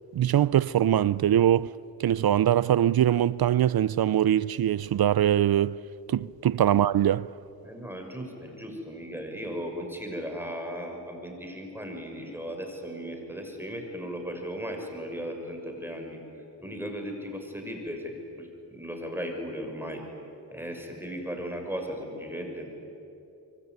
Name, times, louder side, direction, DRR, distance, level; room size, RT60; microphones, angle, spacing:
voice 1, 0.1-1.7 2.0-5.8 6.1-7.3, right 11 dB, 60° right, 0.5 m, -22 dB
voice 2, 7.6-16.2 16.6-20.0 20.5-22.7, equal, 5° right, 6.5 m, -36 dB
25.0 x 24.0 x 9.6 m
cardioid pair, 50°, 42 cm